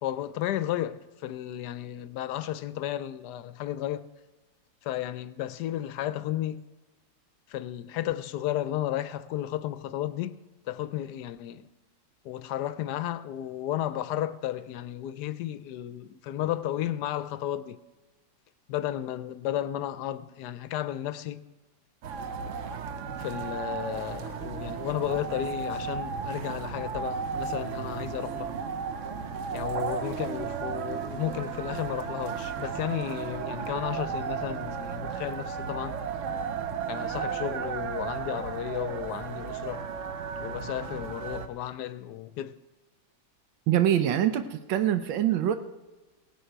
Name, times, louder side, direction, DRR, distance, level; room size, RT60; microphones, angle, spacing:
voice 1, 0.0-4.1 4.8-6.6 7.5-11.7 12.2-17.8 18.7-21.4 23.2-28.5 29.5-36.0 36.9-39.8 40.4-42.6, left 12 dB, 70° left, 1.0 m, -33 dB
sound 1, 22.0-41.5, right 6 dB, 60° right, 0.8 m, -34 dB
voice 2, 43.7-45.6, right 11 dB, 90° right, 1.5 m, -24 dB
17.5 x 10.5 x 4.5 m
omnidirectional pair, 2.1 m